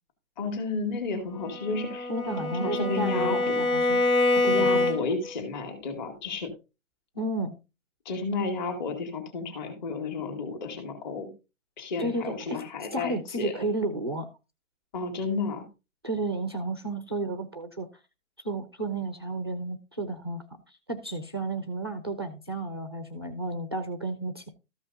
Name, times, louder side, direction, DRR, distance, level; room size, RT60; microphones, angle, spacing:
voice 1, 0.4-3.6 4.5-6.5 8.1-11.3 11.8-13.7 14.9-15.7, left 4 dB, 35° left, 3 dB, 2.3 m, -32 dB
Bowed string instrument, 1.4-5.3, left 2 dB, 85° left, 3.3 m, -26 dB
voice 2, 2.1-4.0 4.4-5.1 7.1-7.5 12.0-12.6 12.9-14.3 16.0-17.9 18.4-20.4 20.9-24.5, right 2 dB, 20° right, 9 dB, 0.4 m, -32 dB
13.5 x 5.5 x 4.0 m, 0.29 s
hypercardioid pair, 155°, 41 cm